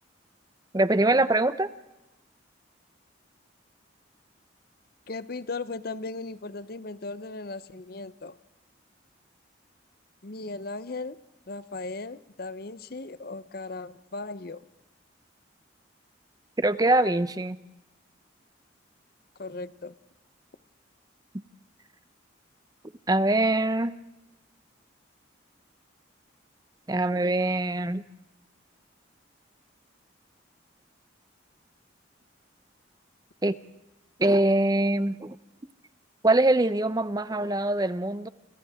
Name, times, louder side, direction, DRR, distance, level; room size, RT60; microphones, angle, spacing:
voice 1, 0.7-1.7 16.6-17.6 23.1-23.9 26.9-28.0 33.4-33.6 34.2-35.4 36.2-38.3, right 2 dB, 20° right, 14 dB, 0.7 m, -23 dB
voice 2, 5.1-8.4 10.2-14.6 19.4-19.9, left 3 dB, 50° left, 15 dB, 0.8 m, -37 dB
29.0 x 26.5 x 3.6 m, 0.99 s
head